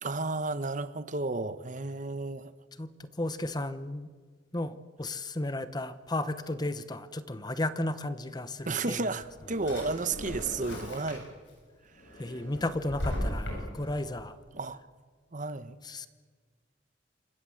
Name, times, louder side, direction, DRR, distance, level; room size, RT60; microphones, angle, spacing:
voice 1, 0.0-2.5 8.7-11.3 14.5-14.8 15.3-15.8, right 3 dB, 45° right, 13 dB, 1.0 m, -32 dB
voice 2, 2.8-4.1 4.5-9.0 12.2-14.4 15.8-16.1, left 1 dB, 20° left, 13 dB, 1.0 m, -34 dB
Drawer open or close, 9.0-11.5 11.9-14.0, equal, 80° left, 7.9 m, -37 dB
27.5 x 24.5 x 7.8 m, 1.5 s
head